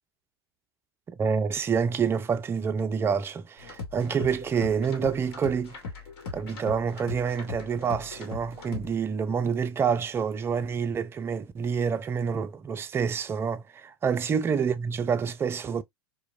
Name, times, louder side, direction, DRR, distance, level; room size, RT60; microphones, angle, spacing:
voice 1, 1.2-5.8 6.3-15.8, right 6 dB, 20° right, 0.3 m, -27 dB
sound 1, 3.6-8.9, left 4 dB, 70° left, 1.1 m, -39 dB
2.9 x 2.1 x 2.3 m
hypercardioid pair, 110°, 13 cm